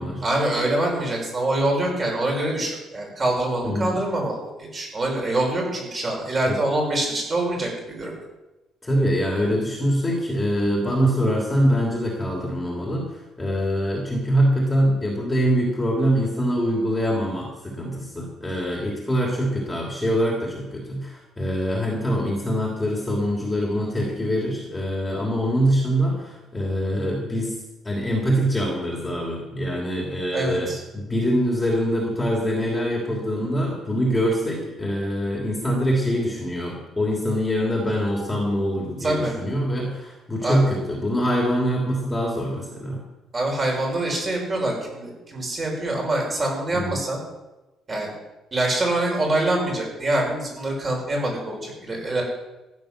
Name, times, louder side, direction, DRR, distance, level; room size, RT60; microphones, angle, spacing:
voice 1, 0.2-8.1 30.3-30.8 39.0-39.3 40.4-40.7 43.3-47.2 47.9-48.1 48.5-52.2, right 1 dB, 25° right, -1 dB, 5.8 m, -25 dB
voice 2, 3.6-4.0 6.5-6.6 8.8-27.5 27.8-43.0 46.7-47.0, equal, 10° left, -2 dB, 3.1 m, -24 dB
15.0 x 10.0 x 6.6 m, 1.0 s
cardioid pair, 145°, 0 cm